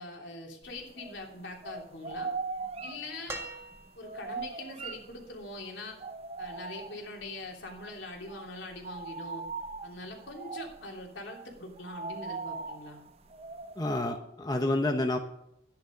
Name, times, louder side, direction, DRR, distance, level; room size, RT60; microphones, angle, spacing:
voice 1, 0.0-2.3 2.8-3.4 3.9-6.0 6.4-9.4 9.8-13.0, left 2 dB, 75° left, 1 dB, 3.1 m, -43 dB
sound 1, 0.7-1.4 1.6-5.6 6.0-7.3 7.7-7.9 8.2-13.9, right 4 dB, 30° right, 0.6 m, -40 dB
sound 2, 3.3-4.3 5.8-5.9, right 2 dB, 15° right, 1.7 m, -41 dB
voice 2, 13.8-15.2, left 1 dB, 20° left, 4 dB, 0.9 m, -29 dB
12.5 x 10.5 x 5.2 m, 0.76 s
head